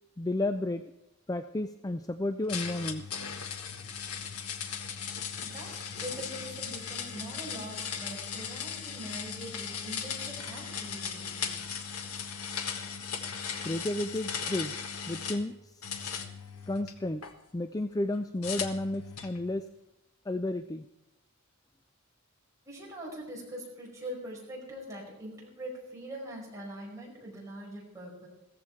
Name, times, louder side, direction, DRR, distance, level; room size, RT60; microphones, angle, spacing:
voice 1, 0.2-0.8 1.3-3.0 13.6-14.8 15.1-16.0 16.7-17.2 17.5-19.6 20.3-20.8, left 1 dB, 15° left, 10 dB, 0.4 m, -32 dB
sound 1, 2.5-15.4 15.8-17.3 18.4-19.4, left 6 dB, 85° left, 1.5 m, -37 dB
voice 2, 5.4-11.6 22.6-28.3, equal, 15° right, -3 dB, 4.9 m, -43 dB
15.5 x 14.5 x 4.6 m, 0.92 s
head